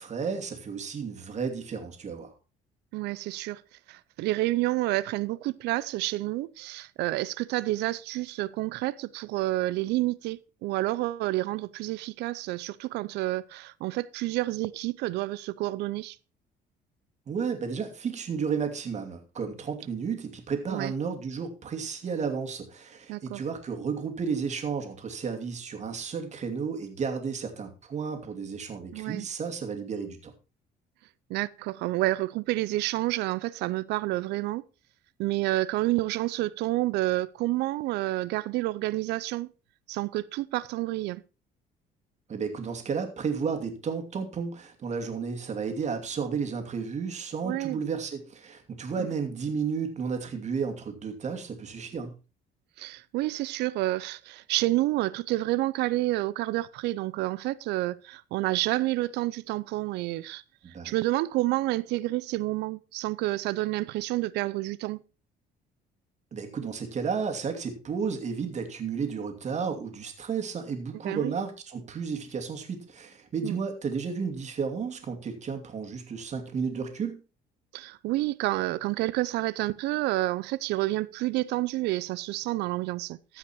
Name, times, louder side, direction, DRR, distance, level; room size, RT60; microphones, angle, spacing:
voice 1, 0.0-2.3 17.3-30.3 42.3-52.1 60.6-60.9 66.3-77.2, right 6 dB, 45° right, 2.6 m, -32 dB
voice 2, 2.9-3.6 3.9-16.2 20.7-20.9 23.1-23.4 28.9-29.3 31.3-34.6 35.2-39.5 39.9-41.2 47.4-47.8 52.8-60.4 60.8-65.0 71.0-71.3 73.4-73.6 77.7-83.4, right 18 dB, 85° right, 0.5 m, -29 dB
14.5 x 5.8 x 4.5 m
cardioid pair, 110°, 17 cm